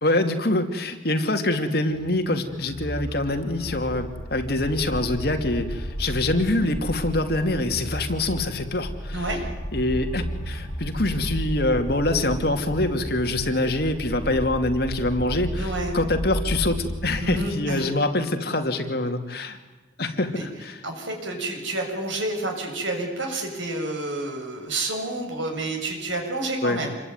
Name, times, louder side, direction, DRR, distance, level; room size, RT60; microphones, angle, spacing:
voice 1, 0.0-9.3 9.7-19.6 20.0-20.8 26.6-26.8, left 2 dB, 55° left, 6 dB, 2.6 m, -25 dB
sound 1, 1.9-17.5, equal, 25° left, 7.1 m, -33 dB
voice 2, 15.5-15.9 17.2-17.9 20.3-20.5 20.8-26.9, right 2 dB, 80° right, 2 dB, 7.0 m, -29 dB
27.5 x 22.5 x 9.6 m, 1.2 s
head